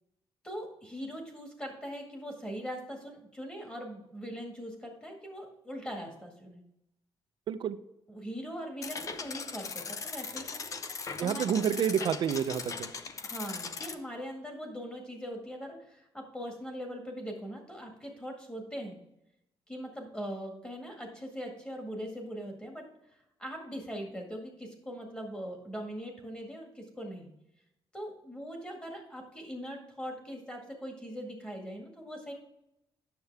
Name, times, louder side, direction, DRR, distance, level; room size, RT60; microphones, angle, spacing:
voice 1, 0.4-6.6 8.1-10.6 11.2-11.6 13.2-18.9 19.7-22.8 23.4-27.3 27.9-32.3, equal, 10° left, 1 dB, 1.8 m, -41 dB
sound 1, 8.8-13.9, left 5 dB, 35° left, 0.6 m, -39 dB
voice 2, 11.2-12.9, right 8 dB, 60° right, 11 dB, 0.6 m, -29 dB
9.6 x 6.9 x 3.4 m, 0.84 s
cardioid pair, 165°, 9 cm